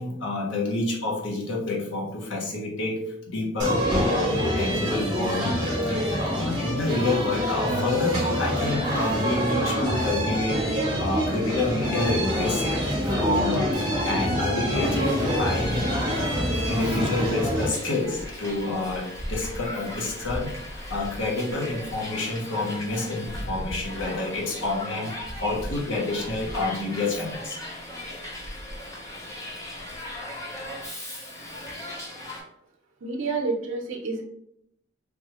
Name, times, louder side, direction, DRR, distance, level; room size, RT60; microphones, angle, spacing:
voice 1, 0.0-3.0 3.3-15.8 16.1-27.6, left 2 dB, 65° left, -2 dB, 0.8 m, -29 dB
sound 1, 3.6-17.7, equal, 20° right, 0.8 m, -26 dB
Hiss, 14.7-32.4, left 1 dB, 15° left, 0.7 m, -37 dB
voice 2, 33.0-34.2, right 3 dB, 75° right, 0 dB, 0.6 m, -29 dB
3.5 x 2.3 x 2.9 m, 0.73 s
head